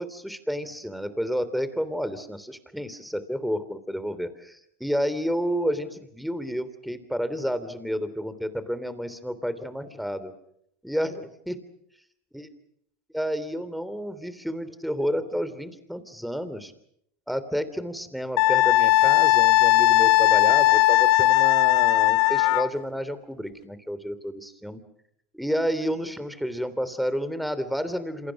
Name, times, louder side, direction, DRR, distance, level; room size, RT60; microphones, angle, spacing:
voice 1, 0.0-10.3 10.8-11.5 12.3-12.5 13.1-16.7 17.3-24.8 25.3-28.3, equal, ahead, 12 dB, 3.2 m, -30 dB
Wind instrument woodwind instrument, 18.4-22.7, left 17 dB, 60° left, 1.1 m, -18 dB
28.0 x 27.0 x 6.1 m, 0.73 s
supercardioid pair, 110°, 0 cm